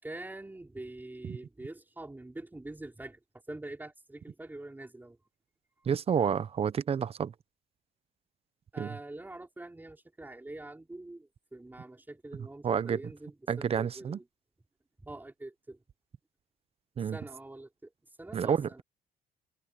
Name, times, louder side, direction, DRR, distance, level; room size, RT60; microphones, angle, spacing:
voice 1, 0.0-3.2 3.5-5.2 8.7-14.2 15.0-15.8 17.0-18.8, right 2 dB, 10° right, 5.7 m, -45 dB
voice 2, 5.9-7.3 8.8-9.0 12.6-13.0 13.5-14.2 17.0-17.2 18.3-18.8, right 7 dB, 35° right, 0.9 m, -29 dB
cardioid pair, 110°, 17 cm